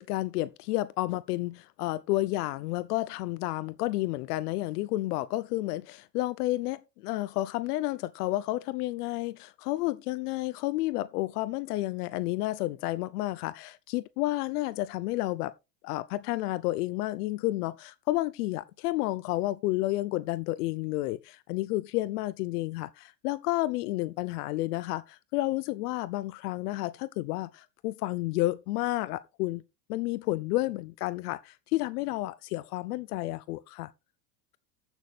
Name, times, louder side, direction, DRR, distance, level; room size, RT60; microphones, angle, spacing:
voice 1, 0.0-15.5 15.8-29.6 29.9-33.9, left 18 dB, 70° left, 0.7 m, -31 dB
14.5 x 6.3 x 3.3 m
hypercardioid pair, 105°, 48 cm